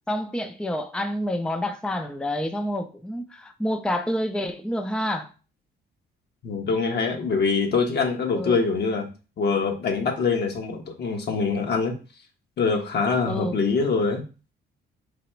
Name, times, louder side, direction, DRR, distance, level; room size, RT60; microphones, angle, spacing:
voice 1, 0.1-5.3 8.3-8.6 13.2-13.6, left 1 dB, 5° left, 0.5 m, -28 dB
voice 2, 6.4-9.1 9.4-11.9 12.6-14.2, left 4 dB, 55° left, 1.2 m, -24 dB
4.1 x 2.9 x 4.5 m
cardioid pair, 90°, 20 cm